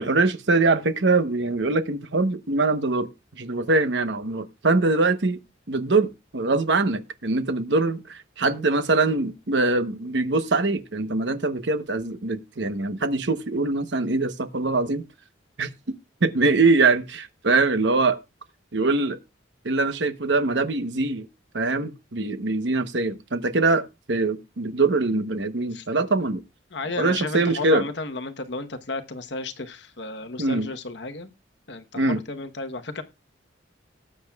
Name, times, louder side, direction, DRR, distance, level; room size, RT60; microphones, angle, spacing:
voice 1, 0.0-3.1 3.4-5.4 5.7-15.0 15.6-15.9 16.2-18.2 18.7-19.2 19.6-21.3 21.5-26.4 26.9-27.9 30.4-30.7 32.0-32.2, right 3 dB, 70° right, 1.0 m, -23 dB
voice 2, 26.7-31.3 31.7-33.0, left 3 dB, 65° left, 1.1 m, -33 dB
18.5 x 8.6 x 2.4 m
head